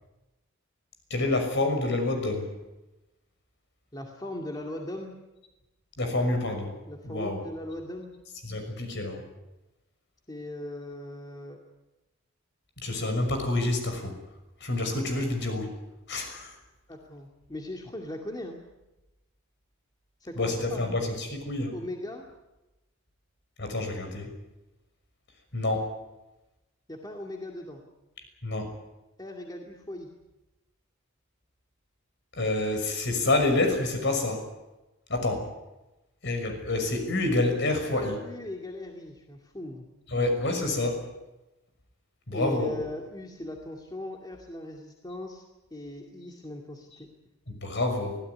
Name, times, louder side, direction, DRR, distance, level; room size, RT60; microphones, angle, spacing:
voice 1, 1.1-2.5 6.0-6.7 7.0-7.4 8.4-9.2 12.8-14.1 14.6-15.7 16.1-16.6 20.4-21.8 23.6-24.3 25.5-25.9 28.4-28.7 32.4-34.5 35.1-35.5 36.2-38.2 40.1-41.0 42.3-42.7 47.6-48.2, left 2 dB, 60° left, 5 dB, 6.2 m, -28 dB
voice 2, 3.9-5.2 6.9-8.1 10.3-11.6 16.9-18.6 20.2-20.9 21.7-22.3 26.9-27.8 29.2-30.1 37.9-39.9 42.3-45.5 45.7-47.1, left 1 dB, 20° left, 1 dB, 2.3 m, -39 dB
24.0 x 17.0 x 9.7 m, 1.0 s
head